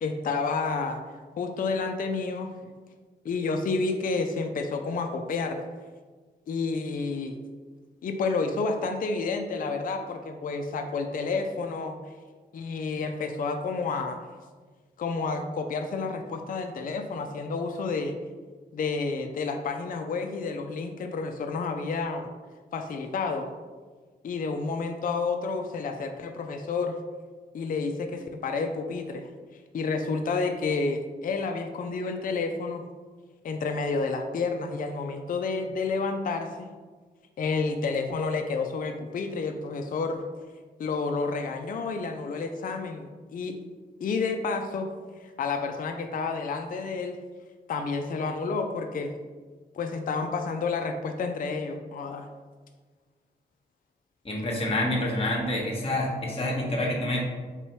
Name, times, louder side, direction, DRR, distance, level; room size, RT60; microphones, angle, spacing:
voice 1, 0.0-1.0 1.4-2.5 3.2-5.6 6.5-7.4 8.0-12.0 12.5-14.2 15.0-18.1 18.7-22.3 22.7-23.5 24.2-27.0 27.5-29.3 29.7-32.8 33.4-36.7 37.4-40.2 40.8-43.6 44.0-44.9 45.2-47.2 47.7-49.1 49.7-52.3, left 4 dB, 45° left, 5 dB, 0.4 m, -30 dB
voice 2, 54.2-57.2, left 1 dB, 30° left, -1 dB, 1.0 m, -27 dB
3.7 x 3.0 x 3.0 m, 1.4 s
supercardioid pair, 40°, 20 cm